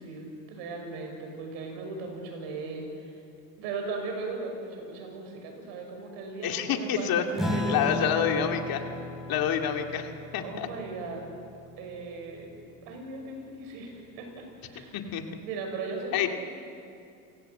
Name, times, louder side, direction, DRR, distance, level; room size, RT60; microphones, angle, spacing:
voice 1, 0.0-3.2 3.6-8.8 10.4-11.3 11.8-12.5 12.8-15.0 15.4-16.3, right 3 dB, 80° right, 2 dB, 6.4 m, -38 dB
voice 2, 6.4-7.2 7.7-8.8 9.3-10.7 14.9-15.2 16.1-16.3, left 8 dB, 55° left, 4 dB, 2.4 m, -27 dB
Acoustic guitar / Strum, 7.4-12.2, left 1 dB, ahead, 4.1 m, -34 dB
28.5 x 16.5 x 8.0 m, 2.5 s
supercardioid pair, 95°, 41 cm